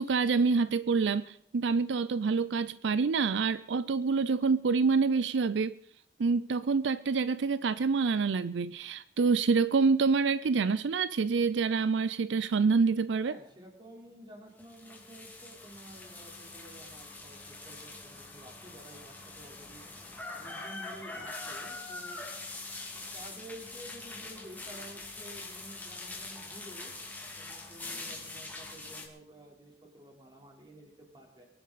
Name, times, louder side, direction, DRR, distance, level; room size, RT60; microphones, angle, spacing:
voice 1, 0.0-5.8 6.2-13.4, right 4 dB, 80° right, 16 dB, 0.5 m, -27 dB
voice 2, 13.2-19.8 20.3-22.2 23.1-26.9 27.4-31.4, right 1 dB, 25° right, 0 dB, 3.9 m, -51 dB
sound 1, 14.6-29.1, left 3 dB, 10° left, 2.2 m, -43 dB
23.0 x 11.5 x 4.1 m, 0.68 s
head